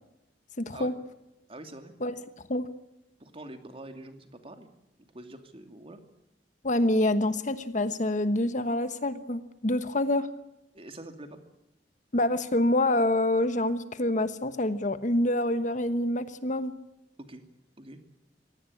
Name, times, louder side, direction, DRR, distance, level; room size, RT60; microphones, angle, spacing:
voice 1, 0.6-0.9 2.0-2.1 2.5-2.7 6.6-10.3 12.1-16.7, left 1 dB, 45° left, 12 dB, 1.2 m, -26 dB
voice 2, 1.5-1.9 3.2-4.7 5.0-6.0 10.7-11.4 17.3-17.4 17.8-18.0, right 1 dB, 30° right, 7 dB, 2.6 m, -45 dB
25.0 x 18.0 x 8.6 m, 0.89 s
head